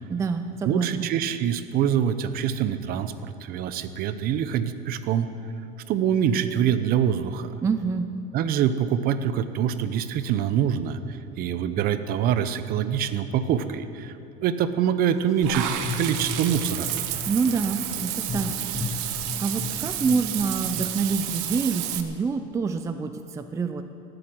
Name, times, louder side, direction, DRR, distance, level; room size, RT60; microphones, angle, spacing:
voice 1, 0.1-1.1 7.6-8.1 17.3-18.5 18.9-23.8, right 5 dB, 15° right, 8 dB, 0.5 m, -27 dB
voice 2, 0.6-5.3 5.9-7.6 8.3-14.1 14.4-15.7 15.9-16.9, right 9 dB, 45° right, 11 dB, 0.8 m, -25 dB
sound 1, 15.2-22.0, left 5 dB, 15° left, 0.8 m, -36 dB
Water / Bathtub (filling or washing), 15.4-22.0, right 12 dB, 70° right, 1.2 m, -31 dB
18.0 x 7.9 x 8.8 m, 2.7 s
cardioid pair, 145°, 21 cm